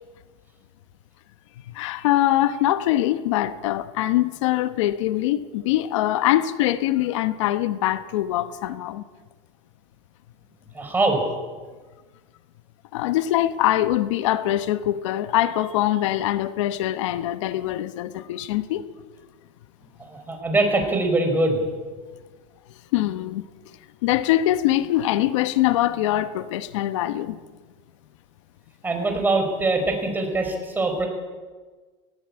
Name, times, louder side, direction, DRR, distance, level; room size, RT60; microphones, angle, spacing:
voice 1, 1.7-9.0 12.9-18.8 22.9-23.4 24.0-27.4, left 14 dB, 85° left, 1.1 m, -23 dB
voice 2, 10.7-11.2 20.1-21.6 28.8-31.1, right 2 dB, 10° right, 4.9 m, -23 dB
18.5 x 17.5 x 8.8 m
supercardioid pair, 140°, 15 cm